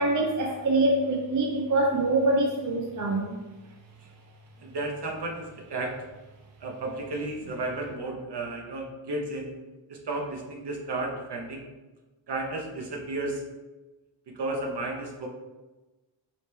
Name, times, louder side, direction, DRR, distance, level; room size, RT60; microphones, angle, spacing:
voice 1, 0.0-3.4, right 2 dB, 40° right, 1 dB, 0.4 m, -24 dB
voice 2, 4.6-6.0 6.6-9.5 9.9-11.7 12.3-13.4 14.3-15.3, right 2 dB, 55° right, 1 dB, 0.8 m, -33 dB
4.8 x 3.4 x 3.2 m, 1.1 s
wide cardioid pair, 170°, 48 cm